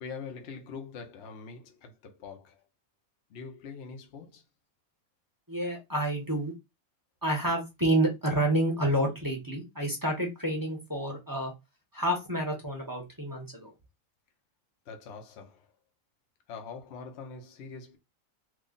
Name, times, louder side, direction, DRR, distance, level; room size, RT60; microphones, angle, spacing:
voice 1, 0.0-2.6 3.3-4.4 14.9-15.7 16.5-18.0, left 5 dB, 55° left, 0.9 m, -43 dB
voice 2, 5.5-6.5 7.2-11.5 11.9-13.7, right 1 dB, 15° right, 0.9 m, -29 dB
3.1 x 2.4 x 3.8 m
omnidirectional pair, 1.5 m